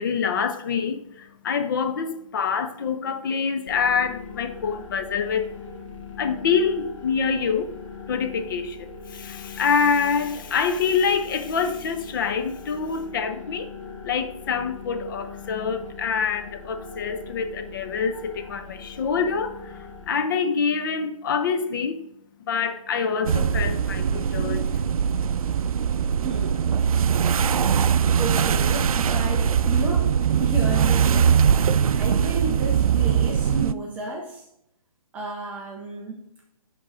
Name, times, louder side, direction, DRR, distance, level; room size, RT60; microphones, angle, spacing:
voice 1, 0.0-5.5 6.2-7.8 8.1-13.7 14.0-19.8 20.1-22.0 22.5-24.7, left 6 dB, 35° left, 0.6 m, -26 dB
sound 1, 3.7-20.1, left 5 dB, 55° left, 1.8 m, -41 dB
sound 2, 23.3-33.7, right 7 dB, 75° right, 0.4 m, -21 dB
voice 2, 26.2-26.6 28.2-30.1 30.4-31.4 31.9-34.5 35.1-36.2, right 3 dB, 10° right, 0.4 m, -32 dB
10.5 x 3.7 x 4.9 m
hypercardioid pair, 155°, 19 cm